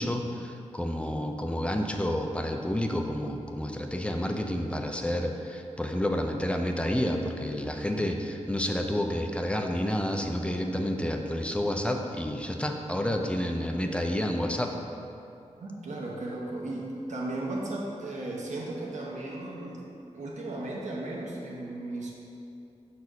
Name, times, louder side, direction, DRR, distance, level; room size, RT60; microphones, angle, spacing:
voice 1, 0.0-14.7, left 1 dB, 10° left, 3 dB, 0.5 m, -30 dB
voice 2, 15.6-19.8 20.1-22.1, right 2 dB, 90° right, -3 dB, 1.0 m, -35 dB
6.2 x 4.2 x 5.2 m, 2.6 s
wide cardioid pair, 115°, 12 cm